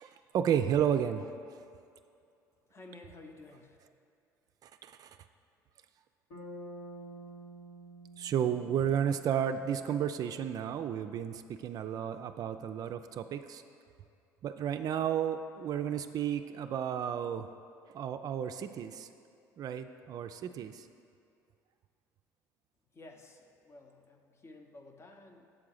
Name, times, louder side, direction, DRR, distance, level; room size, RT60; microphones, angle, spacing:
voice 1, 0.0-1.6 4.6-5.1 8.2-13.6 14.4-17.5 17.9-19.1 19.6-20.9, right 9 dB, 50° right, 8 dB, 0.3 m, -32 dB
voice 2, 2.7-3.8 22.9-25.6, left 2 dB, 35° left, 4 dB, 0.8 m, -53 dB
Bass guitar, 6.3-10.4, right 1 dB, 85° left, 1.8 m, -49 dB
7.5 x 3.8 x 6.3 m, 2.5 s
supercardioid pair, 80°, 8 cm